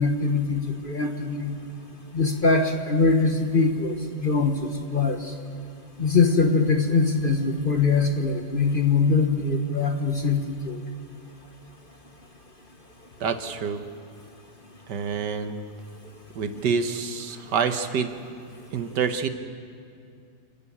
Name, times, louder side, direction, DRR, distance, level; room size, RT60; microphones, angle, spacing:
voice 1, 0.0-1.5 2.1-5.3 6.0-10.8, left 4 dB, 35° left, 5 dB, 1.2 m, -22 dB
voice 2, 13.2-13.8 14.9-15.6 16.4-18.1 18.7-19.3, right 6 dB, 75° right, 8 dB, 1.7 m, -27 dB
29.5 x 11.0 x 8.7 m, 2.4 s
omnidirectional pair, 1.9 m